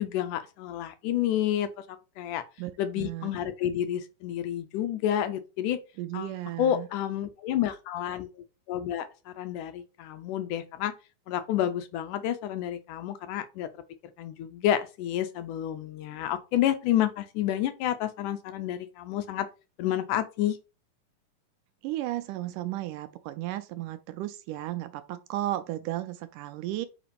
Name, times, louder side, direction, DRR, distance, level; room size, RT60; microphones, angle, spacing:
voice 1, 0.0-1.7 2.2-2.4 2.8-5.8 6.1-6.3 6.6-10.9 11.3-13.7 14.2-19.5 19.8-20.6, left 11 dB, 80° left, 2.0 m, -29 dB
voice 2, 2.6-3.3 6.0-6.9 21.8-26.9, right 14 dB, 80° right, 1.9 m, -34 dB
5.2 x 4.8 x 5.2 m
omnidirectional pair, 4.0 m